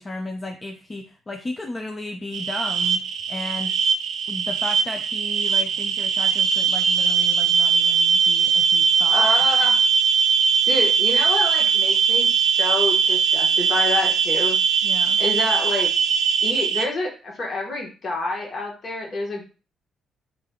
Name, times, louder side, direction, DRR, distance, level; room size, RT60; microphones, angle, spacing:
voice 1, 0.0-3.0 3.3-3.7 4.3-9.2 14.8-15.2, left 2 dB, 25° left, 4 dB, 0.4 m, -34 dB
sound 1, 2.3-16.9, right 6 dB, 75° right, 0.5 m, -20 dB
voice 2, 9.1-9.8 10.6-14.6 15.2-15.9 16.4-19.5, left 2 dB, 50° left, 0 dB, 1.2 m, -27 dB
3.7 x 3.3 x 2.3 m, 0.34 s
cardioid pair, 90°, 0 cm